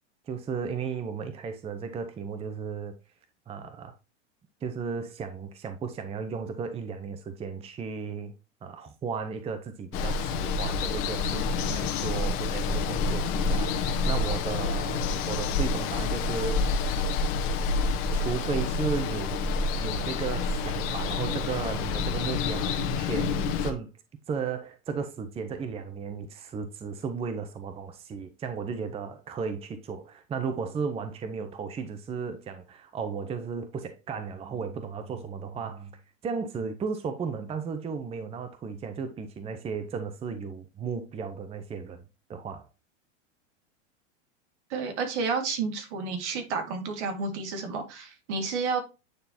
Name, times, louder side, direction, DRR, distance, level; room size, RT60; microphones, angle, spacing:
voice 1, 0.3-2.9 3.5-3.9 4.6-8.3 8.6-16.6 18.1-23.9 24.3-35.9 36.2-42.0 42.3-42.7, right 5 dB, 15° right, 0.6 m, -35 dB
Water, 9.9-23.7, left 4 dB, 50° left, 1.4 m, -28 dB
voice 2, 44.7-48.8, right 4 dB, 65° right, 2.2 m, -31 dB
9.2 x 3.8 x 2.8 m
hypercardioid pair, 120°, 37 cm